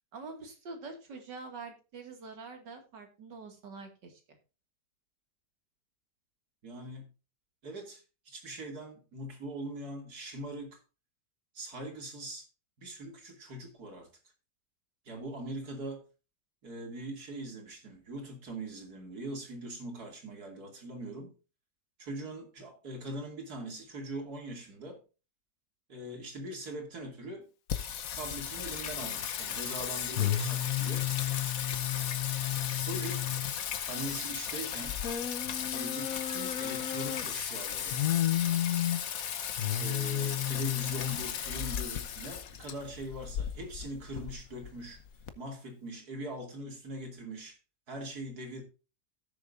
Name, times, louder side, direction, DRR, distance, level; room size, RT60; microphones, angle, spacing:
voice 1, 0.1-4.4, right 4 dB, 90° right, 2.8 m, -45 dB
voice 2, 6.6-7.0 7.6-10.8 11.5-12.5 12.8-14.1 15.0-16.0 16.6-21.3 22.0-25.0 25.9-27.5 28.1-31.1 32.8-33.2 33.9-35.0 35.7-38.0 39.8-45.0 45.3-47.6 47.9-48.6, right 1 dB, 60° right, 3.1 m, -41 dB
Singing, 27.7-45.3, left 10 dB, 60° left, 1.3 m, -33 dB
17.0 x 6.8 x 2.6 m
omnidirectional pair, 1.8 m